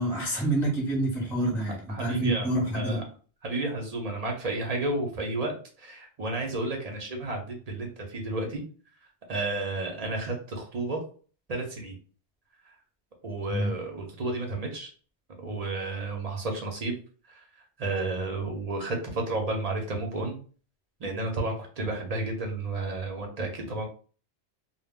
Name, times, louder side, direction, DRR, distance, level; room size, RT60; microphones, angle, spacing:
voice 1, 0.0-3.0 13.5-13.7, right 1 dB, 5° left, -3 dB, 0.6 m, -27 dB
voice 2, 1.9-2.5 2.7-3.0 3.4-8.6 9.3-11.0 11.5-12.0 13.2-14.9 15.4-16.9 17.3-17.4 17.8-20.4 21.0-23.9, right 2 dB, 45° right, 2 dB, 0.5 m, -32 dB
2.0 x 2.0 x 3.5 m, 0.40 s
omnidirectional pair, 1.2 m